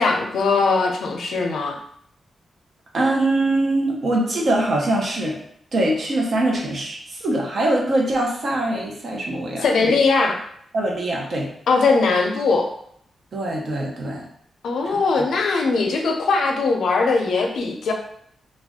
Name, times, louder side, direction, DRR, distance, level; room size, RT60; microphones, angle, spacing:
voice 1, 0.0-1.8 9.6-10.4 11.7-12.7 14.6-17.9, left 4 dB, 85° left, 3 dB, 0.5 m, -20 dB
voice 2, 2.9-5.4 5.7-10.0 10.7-11.5 13.3-14.2 14.8-15.0, right 1 dB, 55° right, -2 dB, 0.7 m, -23 dB
2.4 x 2.1 x 3.5 m, 0.68 s
wide cardioid pair, 125°, 0 cm